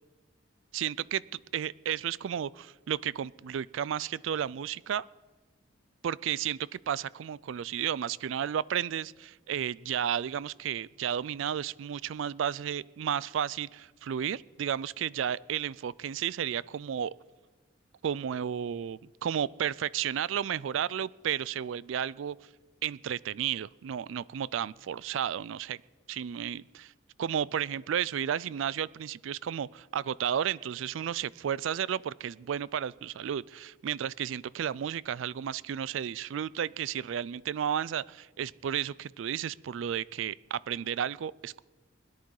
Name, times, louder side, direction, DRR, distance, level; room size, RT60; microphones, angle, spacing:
voice 1, 0.7-1.2 1.5-5.1 6.0-17.1 18.0-22.4 22.8-25.8 26.1-26.9 27.2-41.6, right 9 dB, 75° right, 22 dB, 0.3 m, -33 dB
21.5 x 11.0 x 4.8 m, 1.2 s
head